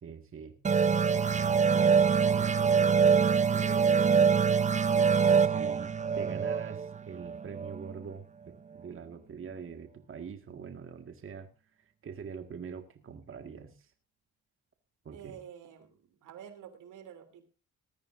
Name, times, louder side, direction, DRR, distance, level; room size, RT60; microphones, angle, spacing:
voice 1, 0.0-0.6 1.1-3.9 5.4-11.5 11.8-13.9 15.1-15.4, right 6 dB, 45° right, 6 dB, 1.8 m, -44 dB
sound 1, 0.6-7.9, right 6 dB, 25° right, 0.7 m, -25 dB
voice 2, 15.1-17.4, right 9 dB, 85° right, 9 dB, 3.0 m, -49 dB
20.0 x 13.5 x 2.6 m, 0.31 s
cardioid pair, 90°, 30 cm